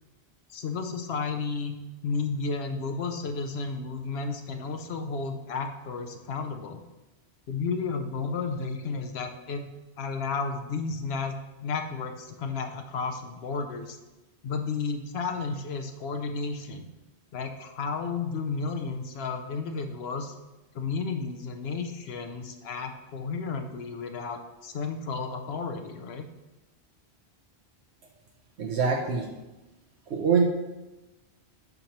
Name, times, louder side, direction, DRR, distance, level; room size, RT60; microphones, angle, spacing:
voice 1, 0.5-1.8 2.0-6.8 7.5-9.7 10.0-11.3 11.6-14.0 14.4-16.9 17.3-20.3 20.7-26.2, left 4 dB, 70° left, 6 dB, 0.9 m, -32 dB
voice 2, 28.6-29.3 30.1-30.4, right 5 dB, 80° right, 0 dB, 1.0 m, -24 dB
7.8 x 3.0 x 5.8 m, 1.1 s
omnidirectional pair, 1.1 m